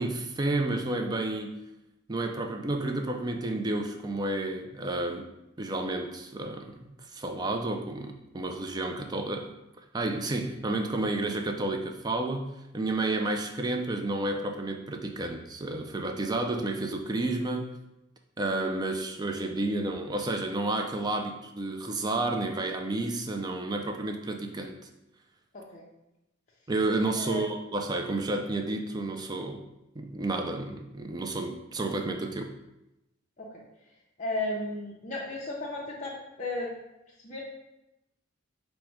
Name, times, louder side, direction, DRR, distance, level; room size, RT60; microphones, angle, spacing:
voice 1, 0.0-1.6 2.1-5.3 5.6-9.5 9.9-17.7 18.4-24.7 26.7-29.6 30.0-32.5, right 2 dB, 20° right, 4 dB, 0.3 m, -31 dB
voice 2, 25.5-25.8 27.1-27.5 33.4-33.6 34.2-36.7 37.2-37.4, left 2 dB, 35° left, -6 dB, 0.5 m, -34 dB
4.8 x 2.1 x 4.5 m, 0.93 s
head